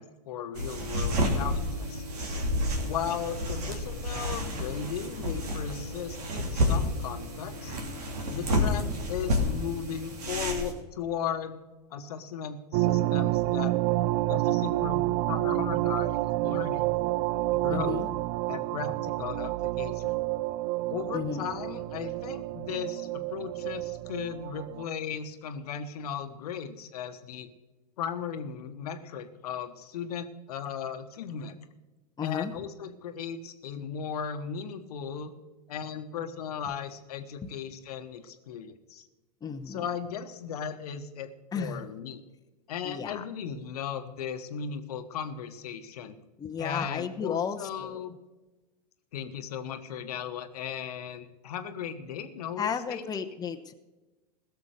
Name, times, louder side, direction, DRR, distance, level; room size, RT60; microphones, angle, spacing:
voice 1, 0.0-2.0 2.8-7.8 8.3-11.6 11.9-13.7 14.3-16.9 17.5-18.0 18.5-20.2 20.9-27.5 28.0-31.6 32.2-35.3 35.7-39.1 39.7-41.3 41.5-42.2 42.7-46.2 46.6-48.1 49.1-53.0, left 7 dB, 70° left, 9 dB, 1.2 m, -36 dB
sound 1, 0.5-10.7, left 1 dB, 70° right, 2.8 m, -30 dB
sound 2, 12.7-24.9, right 17 dB, 50° right, 0.4 m, -29 dB
voice 2, 17.7-18.1 21.1-21.4 32.2-32.5 39.4-39.9 41.5-41.9 42.8-43.2 46.4-48.0 52.6-53.7, left 7 dB, 20° left, 6 dB, 0.9 m, -33 dB
16.5 x 7.0 x 6.5 m, 1.1 s
hypercardioid pair, 90°, 21 cm